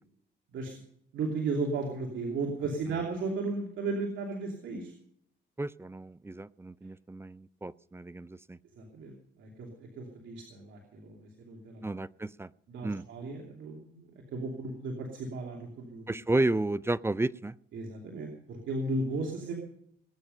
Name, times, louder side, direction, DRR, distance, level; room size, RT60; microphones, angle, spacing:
voice 1, 1.1-4.9 8.8-9.1 9.4-11.8 12.7-16.1 17.7-19.6, right 3 dB, 75° right, 0 dB, 2.9 m, -35 dB
voice 2, 5.6-8.6 11.8-12.5 12.8-13.0 16.1-17.6, right 2 dB, 10° right, 18 dB, 0.5 m, -32 dB
20.0 x 9.6 x 5.4 m, 0.70 s
cardioid pair, 90°, 20 cm